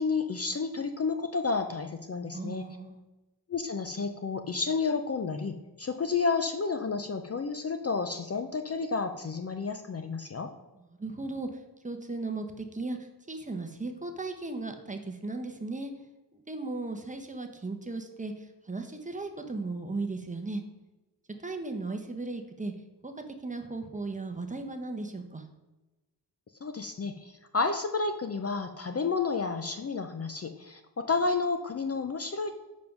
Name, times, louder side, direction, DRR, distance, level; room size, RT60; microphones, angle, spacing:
voice 1, 0.0-2.7 3.5-10.5 26.6-32.5, left 4 dB, 35° left, 7 dB, 0.5 m, -31 dB
voice 2, 2.3-3.0 11.0-11.5 11.8-13.0 13.3-15.9 16.5-18.3 18.7-20.6 21.4-22.7 23.0-23.1 23.4-25.4, right 3 dB, 20° right, 5 dB, 0.8 m, -36 dB
7.5 x 5.2 x 5.8 m, 1.1 s
wide cardioid pair, 165°, 42 cm